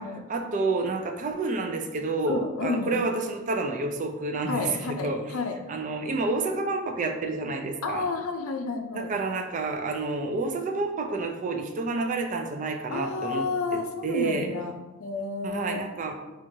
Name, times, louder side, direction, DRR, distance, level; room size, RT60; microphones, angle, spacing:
voice 1, 0.3-5.2 5.7-8.1 8.9-13.5 13.7-14.5 15.4-16.1, right 3 dB, 35° right, 4 dB, 0.4 m, -29 dB
voice 2, 2.3-2.9 4.5-5.6 7.8-9.1 12.9-14.7 15.0-15.9, left 4 dB, 75° left, 5 dB, 0.4 m, -31 dB
4.4 x 2.4 x 2.7 m, 1.1 s
head